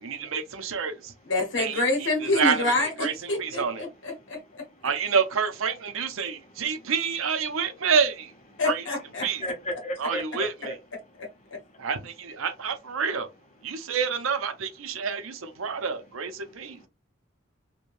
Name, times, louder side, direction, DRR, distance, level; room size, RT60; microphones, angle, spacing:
voice 1, 0.0-1.1 1.6-2.7 3.0-3.8 4.8-8.3 8.6-8.8 9.2-9.4 10.0-10.7 11.8-13.3 13.6-16.8, right 6 dB, 80° right, 0.5 m, -28 dB
voice 2, 1.3-4.6 8.6-9.3 11.2-11.6, left 2 dB, 60° left, 0.8 m, -27 dB
voice 3, 4.2-4.9 6.2-6.7 8.5-8.6 9.4-10.7 11.4-11.9 13.7-13.9 14.9-15.1 15.6-15.8 16.4-16.9, equal, 35° left, 0.6 m, -39 dB
3.1 x 2.2 x 2.5 m
head